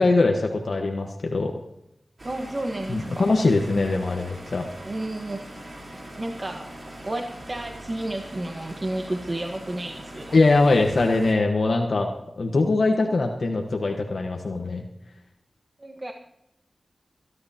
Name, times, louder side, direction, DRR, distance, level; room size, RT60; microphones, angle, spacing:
voice 1, 0.0-1.5 2.9-4.6 10.3-14.8, left 3 dB, 75° left, 2 dB, 1.3 m, -22 dB
voice 2, 2.2-3.3 4.8-5.4 6.2-10.4 15.8-16.1, right 1 dB, 40° right, 3 dB, 1.3 m, -32 dB
sound 1, 2.2-11.3, right 1 dB, 55° right, 3.8 m, -42 dB
26.0 x 11.5 x 2.9 m, 0.79 s
wide cardioid pair, 60°, 0 cm